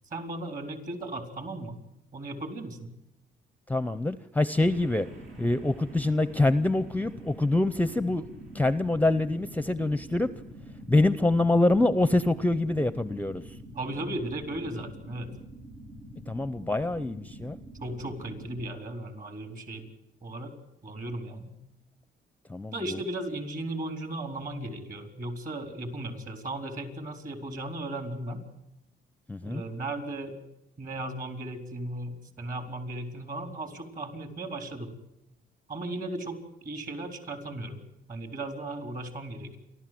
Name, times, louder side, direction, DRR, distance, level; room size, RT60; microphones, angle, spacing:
voice 1, 0.1-1.8 2.1-2.9 13.7-15.3 17.8-19.9 20.2-20.6 20.8-21.5 22.7-28.4 29.4-30.4 30.8-34.9 35.7-37.8 38.1-39.6, right 1 dB, 45° right, 6 dB, 4.1 m, -36 dB
voice 2, 3.7-5.1 5.4-8.3 8.5-10.3 10.9-13.6 16.3-17.6 22.5-23.0 29.3-29.6, left 2 dB, 10° left, 14 dB, 0.7 m, -25 dB
sound 1, 4.6-18.7, right 1 dB, 75° right, 8.0 m, -46 dB
28.5 x 12.5 x 7.8 m, 0.84 s
cardioid pair, 90°, 20 cm